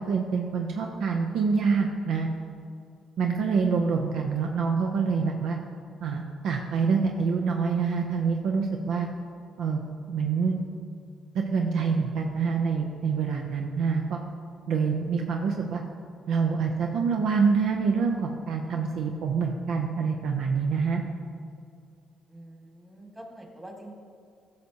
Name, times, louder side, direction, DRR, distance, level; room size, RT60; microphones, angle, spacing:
voice 1, 0.0-2.3 3.2-5.6 6.0-9.1 9.6-9.8 10.1-10.5 11.3-14.2 14.7-15.8 16.3-21.0, right 5 dB, 80° right, 2 dB, 0.5 m, -26 dB
voice 2, 22.3-23.9, right 1 dB, 15° right, 1 dB, 1.6 m, -45 dB
13.5 x 6.5 x 2.8 m, 2.4 s
cardioid pair, 90°, 0 cm